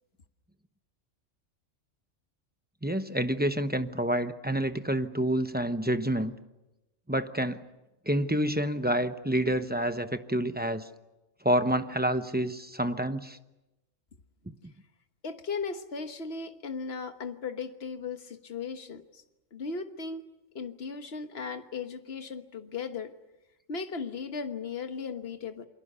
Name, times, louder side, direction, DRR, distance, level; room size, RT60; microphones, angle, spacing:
voice 1, 2.8-6.3 7.1-7.6 8.1-10.9 11.4-13.4 14.5-14.6, right 1 dB, 10° right, 9 dB, 0.9 m, -28 dB
voice 2, 15.2-19.2 19.5-20.3 20.5-23.1 23.7-25.7, left 5 dB, 55° left, 8 dB, 1.6 m, -37 dB
28.5 x 24.0 x 6.9 m, 0.99 s
omnidirectional pair, 1.3 m